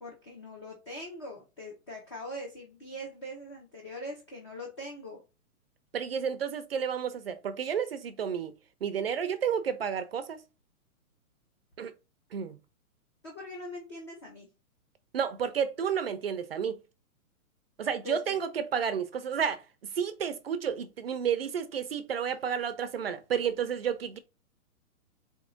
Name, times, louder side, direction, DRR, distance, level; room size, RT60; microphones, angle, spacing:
voice 1, 0.0-5.2 13.2-14.5 18.0-18.4, left 1 dB, 20° left, 0.6 m, -42 dB
voice 2, 5.9-8.5 8.8-10.4 11.8-11.9 12.3-12.6 15.1-16.8 17.8-19.6 20.0-24.2, right 7 dB, 45° right, 0.5 m, -31 dB
4.5 x 2.9 x 3.7 m
hypercardioid pair, 165°, 44 cm